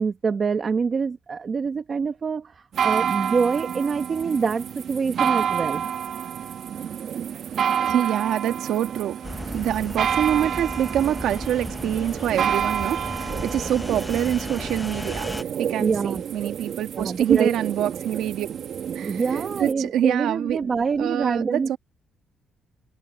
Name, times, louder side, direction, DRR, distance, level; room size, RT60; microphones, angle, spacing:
voice 1, 0.0-5.8 15.8-16.2 16.9-17.6 18.9-21.8, right 5 dB, 35° right, 1.2 m, -25 dB
sound 1, 2.7-19.7, right 8 dB, 60° right, 1.8 m, -29 dB
voice 2, 6.8-18.5 18.9-20.7 21.0-21.8, right 11 dB, 85° right, 1.7 m, -26 dB
sound 2, 9.2-15.4, left 1 dB, 5° left, 1.0 m, -35 dB
cardioid pair, 150°, 0 cm